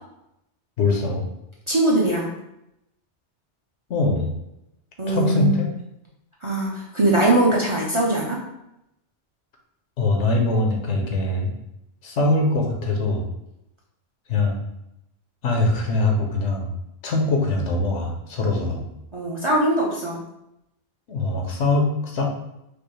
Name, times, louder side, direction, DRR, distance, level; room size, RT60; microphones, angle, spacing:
voice 1, 0.8-1.2 3.9-4.3 5.1-5.7 10.0-11.5 12.0-13.2 14.3-14.6 15.4-16.7 17.0-18.8 21.1-22.2, left 2 dB, 80° left, 1 dB, 1.1 m, -22 dB
voice 2, 1.7-2.3 5.0-5.5 6.4-8.4 19.1-20.2, right 1 dB, 35° right, -4 dB, 0.5 m, -21 dB
5.1 x 2.1 x 3.1 m, 0.84 s
omnidirectional pair, 1.2 m